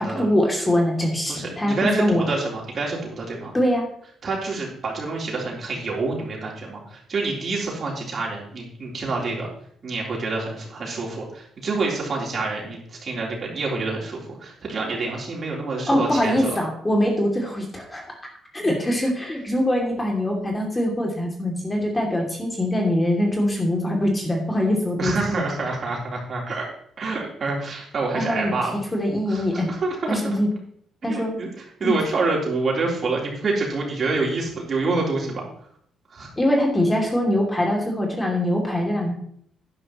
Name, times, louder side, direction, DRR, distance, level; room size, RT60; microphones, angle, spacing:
voice 1, 0.0-2.3 3.5-3.9 15.9-18.2 18.5-25.4 28.1-28.5 28.9-29.7 30.1-30.5 31.0-31.3 31.8-31.9 36.4-39.1, left 1 dB, 15° left, 0 dB, 2.8 m, -23 dB
voice 2, 1.3-3.6 4.2-9.5 9.8-16.6 25.0-26.7 27.0-28.8 29.3-30.3 31.0-31.5 31.8-35.4 36.1-36.3, right 3 dB, 45° right, -2 dB, 3.8 m, -27 dB
10.5 x 10.5 x 3.1 m, 0.65 s
cardioid pair, 90°, 0 cm